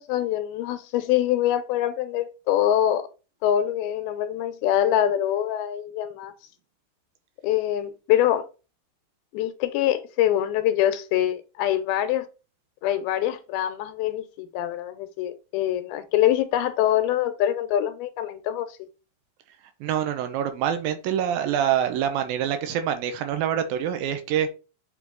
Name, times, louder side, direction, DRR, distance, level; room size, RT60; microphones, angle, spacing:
voice 1, 0.0-3.1 3.4-6.3 7.4-8.5 9.3-12.3 12.8-18.7, left 11 dB, 85° left, 2.6 m, -24 dB
voice 2, 19.8-24.5, right 9 dB, 80° right, 2.6 m, -25 dB
7.4 x 4.1 x 3.9 m
omnidirectional pair, 4.3 m